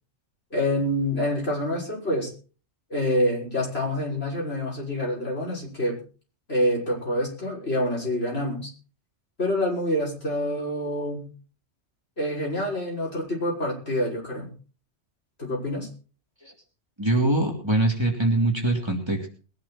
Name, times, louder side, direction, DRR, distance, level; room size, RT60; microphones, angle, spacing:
voice 1, 0.5-2.3 2.9-6.0 6.5-8.7 9.4-11.3 12.2-14.5 15.4-15.9, left 1 dB, 55° left, -3 dB, 6.6 m, -27 dB
voice 2, 17.0-19.3, right 2 dB, 20° right, 0 dB, 3.2 m, -23 dB
21.5 x 10.5 x 4.3 m, 0.38 s
omnidirectional pair, 1.2 m